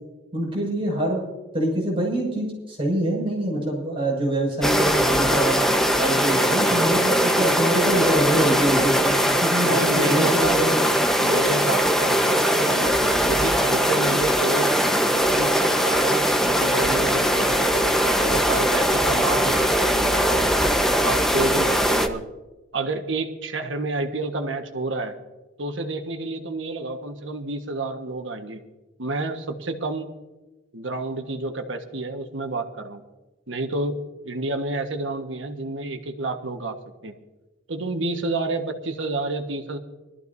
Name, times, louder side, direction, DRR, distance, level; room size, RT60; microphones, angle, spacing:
voice 1, 0.3-1.2 1.5-5.6 6.0-10.7, right 1 dB, 30° right, -3 dB, 6.4 m, -25 dB
sound 1, 4.6-22.1, equal, ahead, 1.1 m, -21 dB
voice 2, 9.6-10.9 11.2-14.7 15.1-20.5 21.0-22.2 22.7-25.1 25.6-28.6 29.0-30.1 30.7-33.0 33.5-36.8 37.0-37.1 37.7-39.8, right 2 dB, 85° right, 5 dB, 1.6 m, -29 dB
23.5 x 14.0 x 2.7 m, 1.1 s
head